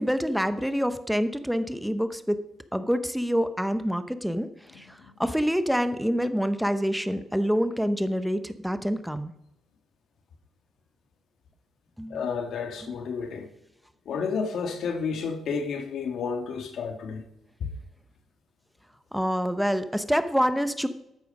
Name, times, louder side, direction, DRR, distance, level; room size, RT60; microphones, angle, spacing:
voice 1, 0.0-2.4 2.7-4.5 4.7-9.3 12.0-12.2 19.1-20.9, equal, ahead, 0.9 m, -26 dB
voice 2, 12.1-13.5 14.1-17.2 17.6-17.7, left 5 dB, 70° left, 1.8 m, -31 dB
12.5 x 9.1 x 5.4 m
cardioid pair, 90°, 0 cm